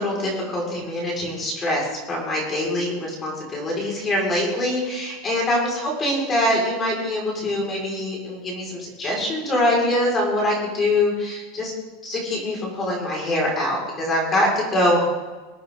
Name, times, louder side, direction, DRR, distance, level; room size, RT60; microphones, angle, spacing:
voice 1, 0.0-11.7 12.0-15.0, left 1 dB, 20° left, -2 dB, 5.4 m, -24 dB
23.0 x 9.1 x 3.9 m, 1.2 s
supercardioid pair, 150°, 0 cm